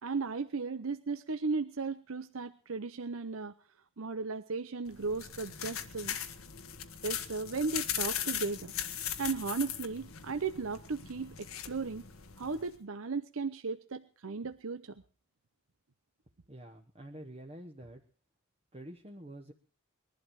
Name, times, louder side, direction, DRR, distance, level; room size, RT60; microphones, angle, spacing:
voice 1, 0.0-3.5 4.0-6.1 7.0-8.7 9.2-12.0 12.4-15.0, right 4 dB, 75° right, 9 dB, 0.7 m, -36 dB
sound 1, 4.9-12.8, left 9 dB, 80° left, 1.5 m, -39 dB
voice 2, 16.5-18.0 18.7-19.5, right 1 dB, 30° right, 1 dB, 1.2 m, -47 dB
21.0 x 12.0 x 4.7 m, 0.40 s
head